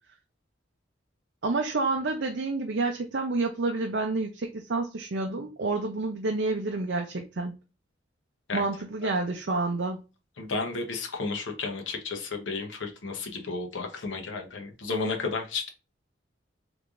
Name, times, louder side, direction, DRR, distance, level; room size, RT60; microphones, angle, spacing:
voice 1, 1.4-7.5 8.5-10.0, right 3 dB, 65° right, 0.6 m, -29 dB
voice 2, 10.4-15.7, left 4 dB, 85° left, 0.9 m, -32 dB
3.6 x 3.3 x 2.5 m
head